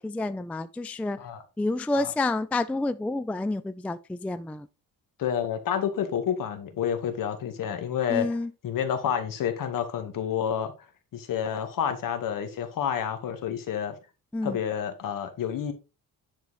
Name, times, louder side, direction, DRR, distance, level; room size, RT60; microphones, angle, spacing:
voice 1, 0.0-1.2 1.6-4.7 8.1-8.5 14.3-14.6, left 2 dB, 5° left, 0.3 m, -29 dB
voice 2, 5.2-8.4 8.6-10.7 11.1-14.0 14.4-15.7, left 8 dB, 60° left, 2.1 m, -29 dB
10.5 x 4.5 x 4.2 m
cardioid pair, 135°, 36 cm